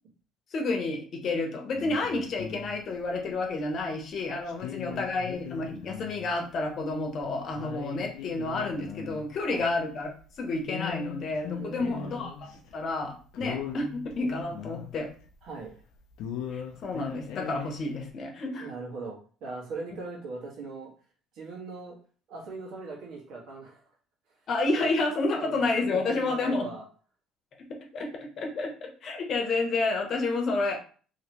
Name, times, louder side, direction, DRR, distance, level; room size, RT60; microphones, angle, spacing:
voice 1, 0.5-10.1 10.4-15.1 16.5-18.7 24.5-26.7 27.9-28.1 28.4-30.8, left 3 dB, 55° left, 2 dB, 0.9 m, -30 dB
sound 1, 1.7-3.3 3.8-3.9 4.5-6.3 6.6-6.7 7.2-7.3 7.5-10.3 10.7-12.7 13.0-13.1 13.3-15.8 16.1-18.1, left 8 dB, 80° left, 0.5 m, -39 dB
voice 2, 11.6-12.3 15.4-15.7 18.6-20.9 21.3-22.0 22.3-23.8 24.8-26.8, right 3 dB, 75° right, -2 dB, 1.4 m, -40 dB
3.0 x 2.9 x 2.9 m, 0.41 s
supercardioid pair, 90°, 0 cm